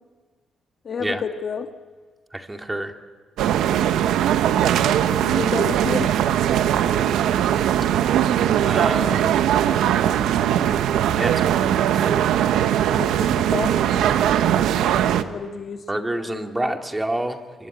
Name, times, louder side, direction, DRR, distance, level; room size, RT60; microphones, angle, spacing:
voice 1, 0.8-1.7 5.1-6.1 12.9-14.1 15.3-15.8 16.3-16.8, left 5 dB, 45° left, 7 dB, 1.5 m, -30 dB
voice 2, 2.3-2.9 8.6-9.5 11.2-12.3 15.9-17.7, right 1 dB, 15° right, 4 dB, 2.3 m, -28 dB
sound 1, 3.4-15.2, right 10 dB, 85° right, 1.1 m, -20 dB
25.0 x 24.0 x 9.0 m, 1.4 s
cardioid pair, 90°, 0 cm